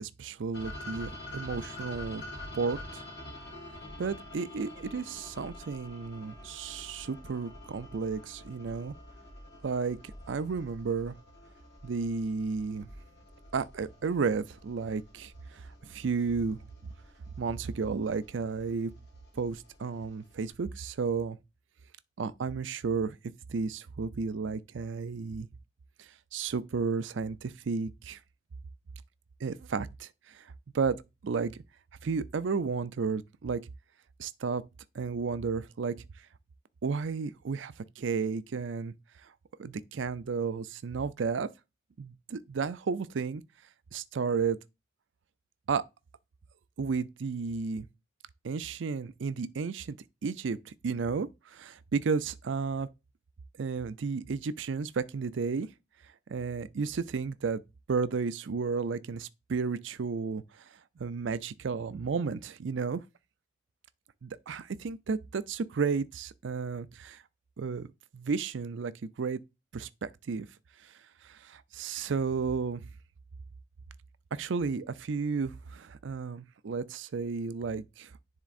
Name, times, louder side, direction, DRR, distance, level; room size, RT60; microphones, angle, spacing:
voice 1, 0.0-2.2 2.5-3.0 4.0-8.9 9.6-10.0 10.3-11.1 11.8-12.9 13.5-16.6 17.4-18.9 19.3-21.4 22.2-23.2 23.5-25.5 26.0-28.2 29.4-31.0 31.2-31.5 32.0-33.6 34.2-34.6 34.9-35.9 36.8-38.9 39.2-39.3 39.6-41.5 42.0-43.4 43.9-44.6 45.7-45.8 46.8-47.9 48.4-50.0 50.2-52.9 53.6-55.7 56.3-57.6 57.9-60.6 61.0-63.0 64.2-67.2 67.6-67.9 68.1-69.4 69.7-70.5 70.8-70.9 71.2-72.8 74.3-78.1, right 5 dB, 70° right, 0.5 m, -33 dB
sound 1, 0.5-20.5, left 1 dB, 65° left, 2.1 m, -47 dB
10.5 x 3.7 x 2.5 m
head